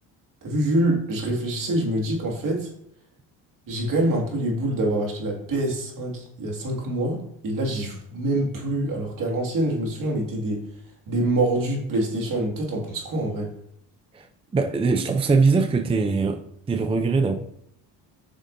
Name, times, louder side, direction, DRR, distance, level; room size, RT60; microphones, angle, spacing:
voice 1, 0.4-2.7 3.7-10.7 11.1-13.5, right 1 dB, 50° right, 0 dB, 2.3 m, -25 dB
voice 2, 14.5-17.3, right 4 dB, 15° right, 7 dB, 0.5 m, -22 dB
7.4 x 6.3 x 2.7 m, 0.71 s
supercardioid pair, 80°, 41 cm